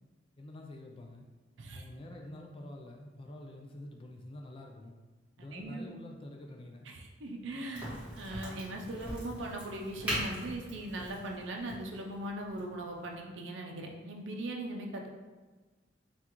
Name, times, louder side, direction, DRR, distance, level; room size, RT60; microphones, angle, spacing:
voice 1, 0.4-1.3 1.7-4.9 5.4-6.9, left 1 dB, 30° left, 2 dB, 0.4 m, -47 dB
voice 2, 5.4-5.9 6.9-7.9 8.2-15.1, right 1 dB, 75° right, 1 dB, 0.5 m, -40 dB
Crack, 7.7-13.2, equal, 10° right, 1.5 m, -41 dB
5.8 x 2.4 x 2.9 m, 1.3 s
head